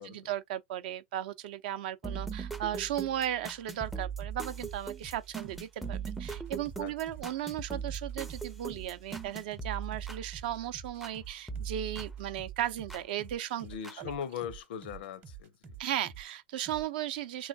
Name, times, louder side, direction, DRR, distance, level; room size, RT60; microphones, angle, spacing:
voice 1, 0.0-13.7 14.0-14.1 15.8-17.5, right 11 dB, 65° right, 0.5 m, -36 dB
sound 1, 2.0-11.2 11.5-13.1 13.8-13.9, right 5 dB, 5° right, 0.4 m, -40 dB
sound 2, 3.8-16.4 16.7-16.9, right 7 dB, 30° right, 0.8 m, -49 dB
voice 2, 13.6-15.8, left 8 dB, 70° left, 0.5 m, -40 dB
3.7 x 3.1 x 2.6 m
hypercardioid pair, 120°, 6 cm